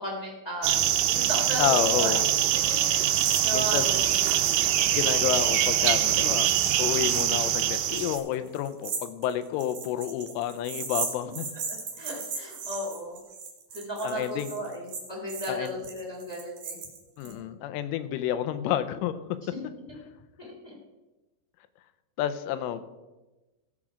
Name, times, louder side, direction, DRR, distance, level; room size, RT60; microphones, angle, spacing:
voice 1, 0.0-2.2 2.8-3.1 3.4-4.2 12.0-13.2 13.7-16.8 17.2-17.6 20.4-20.7, right 1 dB, 15° left, -3 dB, 1.2 m, -35 dB
sound 1, 0.6-8.2, right 11 dB, 80° right, 3.2 m, -24 dB
voice 2, 1.6-2.3 3.2-4.1 4.6-6.5 6.8-11.5 14.0-14.6 15.5-15.8 17.2-19.2 22.2-22.9, left 11 dB, 85° left, 11 dB, 3.1 m, -30 dB
sound 2, 3.1-3.4 3.7-3.8 4.4-4.7 5.0-17.3, right 5 dB, 55° right, 3.4 m, -37 dB
16.0 x 7.4 x 5.0 m, 1.1 s
omnidirectional pair, 5.7 m